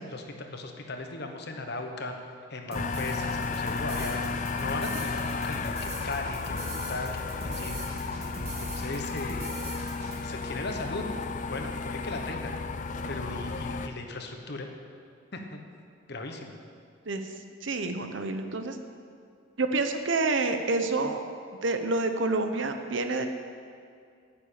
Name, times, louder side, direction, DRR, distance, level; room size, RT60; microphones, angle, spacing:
voice 1, 0.0-2.1 2.5-7.8 8.6-9.7 10.2-11.0 11.5-12.5 13.1-14.7 15.3-15.6 16.1-16.5, left 2 dB, 55° left, 4 dB, 1.1 m, -37 dB
sound 1, 2.7-13.9, left 4 dB, 40° left, 0.5 m, -33 dB
sound 2, 2.7-10.2, right 1 dB, 30° right, 2.3 m, -40 dB
voice 2, 17.6-18.8 19.6-21.2 21.6-23.3, right 3 dB, 65° right, 7 dB, 0.9 m, -28 dB
9.9 x 7.0 x 8.6 m, 2.3 s
head